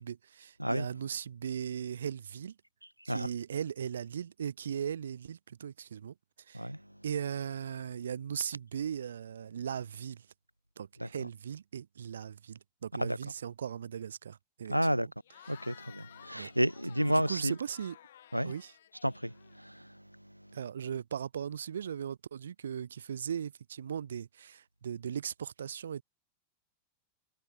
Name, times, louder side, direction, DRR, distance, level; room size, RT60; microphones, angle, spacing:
voice 1, 0.0-2.6 3.0-6.1 6.5-6.7 7.0-10.3 10.8-14.8 15.5-15.8 16.3-16.5 17.1-18.0 18.4-18.7 20.5-26.0, right 8 dB, 65° right, 0.8 m, -38 dB
voice 2, 14.7-15.1 15.5-17.5 18.3-18.5 19.0-19.9, equal, 90° right, 0.5 m, -31 dB
Cheering / Crowd, 15.2-19.9, left 11 dB, 60° left, 2.9 m, -55 dB
figure-of-eight pair, 90°, 0 cm